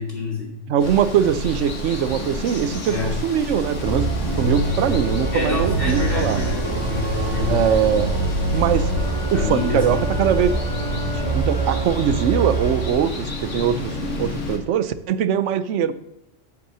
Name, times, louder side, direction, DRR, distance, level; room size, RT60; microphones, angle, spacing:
voice 1, 0.0-0.6 2.9-3.1 5.3-7.6 9.3-10.2, left 3 dB, 50° left, -2 dB, 3.0 m, -28 dB
voice 2, 0.7-4.1 4.4-6.4 7.5-8.1 8.5-8.9 9.3-10.7 11.1-13.9 14.2-15.9, right 8 dB, 85° right, 14 dB, 0.9 m, -22 dB
Water, 0.8-14.6, left 1 dB, 90° left, 1.9 m, -30 dB
Organ, 3.8-13.0, right 2 dB, 65° right, 1.9 m, -24 dB
8.1 x 5.5 x 7.4 m, 0.88 s
omnidirectional pair, 1.2 m